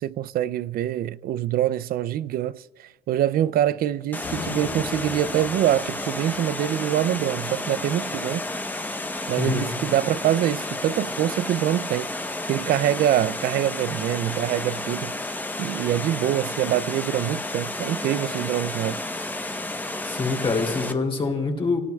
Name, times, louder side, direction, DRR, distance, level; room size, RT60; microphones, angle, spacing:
voice 1, 0.0-8.4 9.3-12.1 12.5-15.1 15.6-19.0, right 12 dB, 60° right, 0.4 m, -25 dB
Water, 4.1-20.9, left 2 dB, 10° left, 0.9 m, -31 dB
sound 1, 4.2-7.6, left 4 dB, 50° left, 4.5 m, -39 dB
voice 2, 9.4-9.7 20.0-21.8, left 4 dB, 30° left, 2.9 m, -25 dB
28.5 x 18.0 x 2.3 m
cardioid pair, 110°, 17 cm